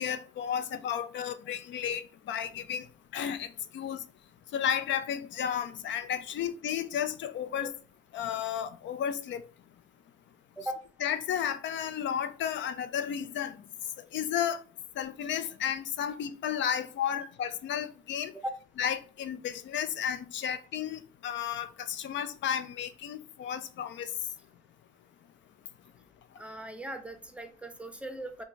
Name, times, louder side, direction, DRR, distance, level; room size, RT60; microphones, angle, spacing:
voice 1, 0.0-2.9 3.1-4.0 4.5-7.7 8.1-9.4 11.0-13.6 14.1-14.6 15.0-18.3 18.8-24.1, left 9 dB, 70° left, 0.4 m, -33 dB
voice 2, 26.4-28.4, right 1 dB, 5° right, 0.6 m, -39 dB
4.4 x 2.3 x 2.6 m
cardioid pair, 90°, 20 cm